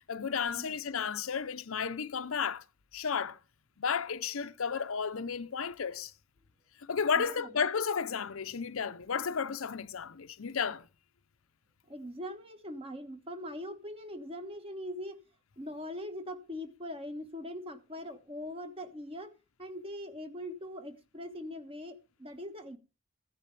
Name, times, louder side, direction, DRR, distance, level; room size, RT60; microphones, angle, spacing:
voice 1, 0.1-2.6 2.9-3.4 3.8-6.1 6.8-10.9, left 6 dB, 80° left, 0.7 m, -33 dB
voice 2, 7.2-7.5 11.9-15.2 15.6-19.3 19.6-22.8, left 1 dB, 25° right, 1.3 m, -41 dB
15.0 x 10.5 x 3.3 m
head